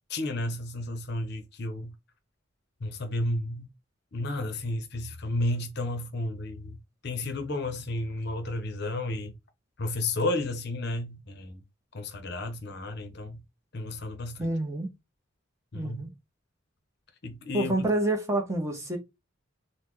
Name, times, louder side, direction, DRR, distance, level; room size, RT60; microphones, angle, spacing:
voice 1, 0.1-1.9 2.8-3.7 4.1-6.8 7.0-9.3 9.8-11.6 11.9-13.4 13.7-14.5 15.7-16.0 17.2-17.9, left 2 dB, 55° left, 0.6 m, -32 dB
voice 2, 14.4-14.9 15.7-16.1 17.5-19.0, right 1 dB, 15° right, 0.7 m, -28 dB
3.8 x 2.1 x 3.0 m
head